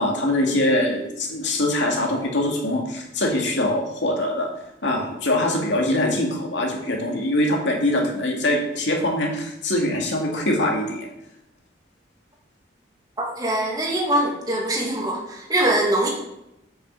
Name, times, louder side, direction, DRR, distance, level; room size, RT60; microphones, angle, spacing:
voice 1, 0.0-4.5 4.8-11.1, left 1 dB, 90° left, 0 dB, 2.4 m, -23 dB
voice 2, 13.4-16.1, right 1 dB, 20° right, -2 dB, 2.5 m, -22 dB
8.0 x 6.6 x 7.1 m, 0.86 s
head